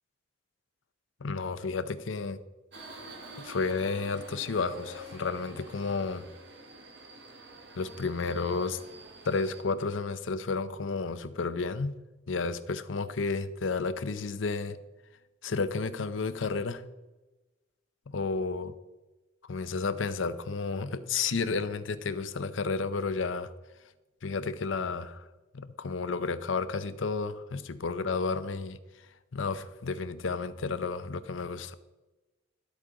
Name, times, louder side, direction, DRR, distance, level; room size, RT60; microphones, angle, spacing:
voice 1, 1.2-2.4 3.4-6.3 7.8-8.8 9.2-11.9 12.3-14.8 15.4-16.8 18.1-18.7 19.5-23.5 24.2-25.3 25.5-28.8 29.3-31.7, left 4 dB, 85° left, 13 dB, 0.6 m, -32 dB
Subway metro underground, 2.7-9.6, right 2 dB, 65° right, 1.5 m, -48 dB
11.5 x 8.3 x 3.8 m, 1.1 s
head